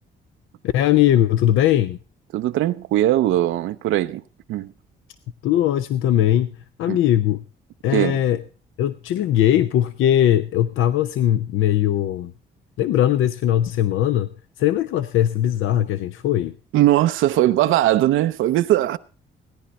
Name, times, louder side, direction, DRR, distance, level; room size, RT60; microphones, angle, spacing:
voice 1, 0.6-2.0 5.4-6.5 6.8-7.4 7.8-8.4 8.8-12.3 12.8-14.3 14.6-16.5, left 12 dB, 85° left, 0.6 m, -19 dB
voice 2, 2.3-4.2 4.5-4.7 6.9-7.0 7.9-8.2 16.7-19.0, right 14 dB, 85° right, 0.6 m, -19 dB
17.0 x 10.0 x 4.2 m
cardioid pair, 90°, 20 cm